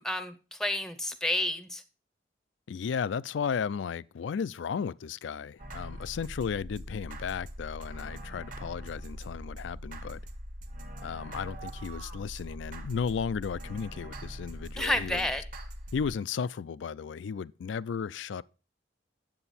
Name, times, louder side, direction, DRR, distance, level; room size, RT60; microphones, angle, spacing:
voice 1, 0.0-1.8 14.8-15.4, left 1 dB, 5° left, 0.7 m, -30 dB
voice 2, 2.7-10.2 11.0-15.3 15.9-18.4, left 6 dB, 80° left, 0.4 m, -34 dB
sound 1, 5.6-16.2, equal, 45° right, 1.2 m, -42 dB
9.1 x 7.8 x 4.2 m
head